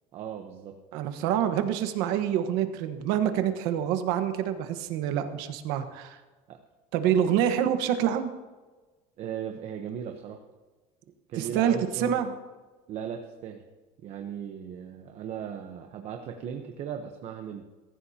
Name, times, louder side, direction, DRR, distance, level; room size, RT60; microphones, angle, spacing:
voice 1, 0.1-0.8 6.5-6.6 9.2-10.4 11.3-12.2 12.9-13.6 14.0-17.6, right 8 dB, 40° right, 4 dB, 1.0 m, -37 dB
voice 2, 0.9-6.2 6.9-8.3 11.4-12.3, right 10 dB, 75° right, 7 dB, 1.4 m, -26 dB
22.5 x 14.5 x 2.9 m, 1.3 s
cardioid pair, 170°, 16 cm